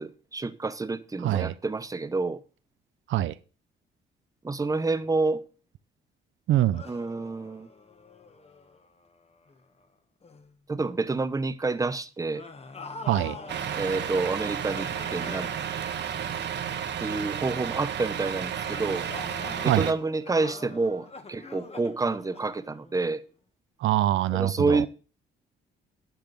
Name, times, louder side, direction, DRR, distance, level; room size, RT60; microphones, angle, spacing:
voice 1, 0.0-2.4 4.4-5.4 6.9-7.7 10.7-12.5 13.7-15.5 17.0-19.1 19.6-23.2 24.3-24.9, right 3 dB, 15° right, 0.9 m, -28 dB
voice 2, 1.2-1.5 3.1-3.3 6.5-6.8 13.1-13.4 19.6-19.9 23.8-24.9, right 13 dB, 75° right, 0.6 m, -24 dB
sound 1, 6.7-9.8 10.2-10.5 12.3-16.9 18.6-23.2, left 4 dB, 30° left, 1.5 m, -45 dB
Truck, 13.5-19.9, right 8 dB, 60° right, 1.3 m, -32 dB
10.5 x 5.8 x 6.8 m
cardioid pair, 90°, 20 cm